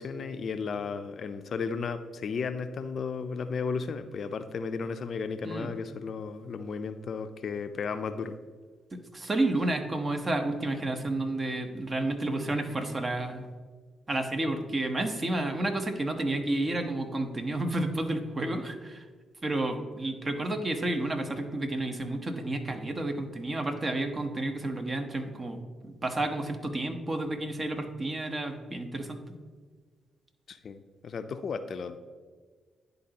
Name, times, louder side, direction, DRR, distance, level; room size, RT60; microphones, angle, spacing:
voice 1, 0.0-8.4 30.5-32.0, left 5 dB, 60° left, 10 dB, 0.4 m, -34 dB
voice 2, 8.9-13.5 14.1-19.0 19.4-25.6 25.8-29.2, right 2 dB, 35° right, 6 dB, 1.0 m, -31 dB
10.5 x 3.9 x 2.9 m, 1.5 s
hypercardioid pair, 45°, 0 cm